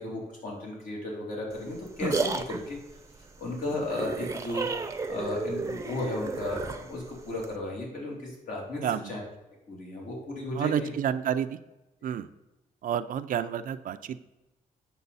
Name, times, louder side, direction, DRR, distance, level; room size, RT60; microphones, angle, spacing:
voice 1, 0.0-2.8 3.4-4.7 5.1-8.8 9.1-9.2 9.7-10.9, left 2 dB, 65° left, -2 dB, 2.9 m, -34 dB
sound 1, 1.5-7.6, right 4 dB, 20° right, 0.6 m, -33 dB
voice 2, 8.8-9.1 10.5-11.6 12.0-12.3 12.8-14.2, right 9 dB, 70° right, 10 dB, 0.5 m, -29 dB
8.2 x 6.9 x 4.1 m, 1.0 s
cardioid pair, 130°, 14 cm